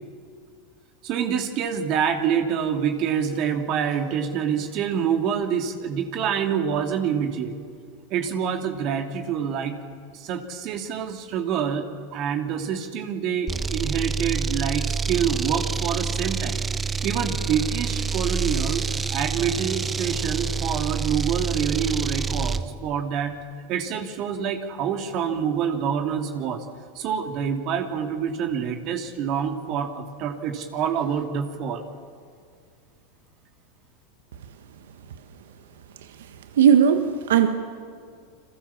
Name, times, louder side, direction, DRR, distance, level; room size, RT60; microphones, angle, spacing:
voice 1, 1.0-7.6 8.1-9.8 10.1-16.6 16.9-18.8 19.1-23.4 23.7-26.6 26.9-31.9, right 7 dB, 50° right, 5 dB, 2.7 m, -26 dB
sound 1, 13.5-22.7, right 5 dB, 20° right, 1.3 m, -27 dB
voice 2, 36.6-37.5, right 8 dB, 80° right, 8 dB, 1.5 m, -17 dB
30.0 x 22.5 x 7.2 m, 2.2 s
hypercardioid pair, 100°, 0 cm